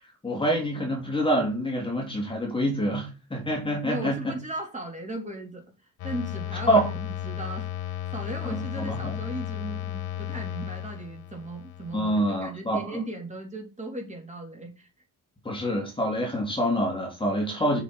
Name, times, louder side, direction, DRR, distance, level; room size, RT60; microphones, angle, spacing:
voice 1, 0.2-4.3 6.7-6.9 8.4-9.2 11.9-12.8 15.4-17.8, equal, 15° left, 3.1 m, -26 dB
voice 2, 3.8-5.6 6.0-14.9, right 1 dB, 20° right, 3.6 m, -37 dB
sound 1, 6.0-12.5, left 13 dB, 85° left, 1.8 m, -35 dB
8.0 x 6.1 x 6.3 m
cardioid pair, 135°, 36 cm